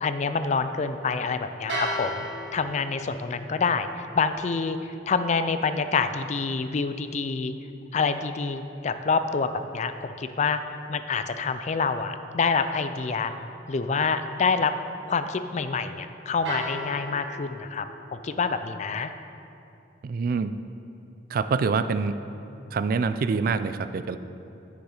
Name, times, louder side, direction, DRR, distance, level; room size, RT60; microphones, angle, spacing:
voice 1, 0.0-2.3 2.5-7.5 7.9-13.3 13.7-14.7 15.1-19.1, left 4 dB, 40° left, 10 dB, 0.4 m, -27 dB
sound 1, 1.7-7.8 16.5-18.4, equal, 75° right, 1.3 m, -38 dB
voice 2, 20.0-20.5 21.3-22.2 22.7-24.2, right 4 dB, 50° right, 12 dB, 0.3 m, -25 dB
10.0 x 6.4 x 4.9 m, 2.7 s
head